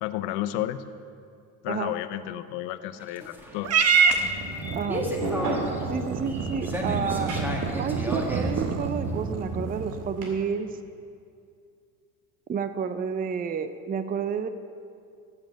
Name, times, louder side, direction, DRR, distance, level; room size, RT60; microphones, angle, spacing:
voice 1, 0.0-0.8 1.6-3.7, left 14 dB, 70° left, 13 dB, 0.8 m, -32 dB
sound 1, 2.9-9.8, equal, 5° right, 1.9 m, -34 dB
Purr / Meow, 3.6-10.1, right 5 dB, 35° right, 0.9 m, -27 dB
voice 2, 4.7-5.1 5.9-7.3 7.8-10.8 12.5-14.5, right 6 dB, 20° right, 11 dB, 0.5 m, -30 dB
sound 2, 5.1-10.3, right 2 dB, 70° right, 2.9 m, -35 dB
14.5 x 7.4 x 6.4 m, 2.3 s
supercardioid pair, 90°, 42 cm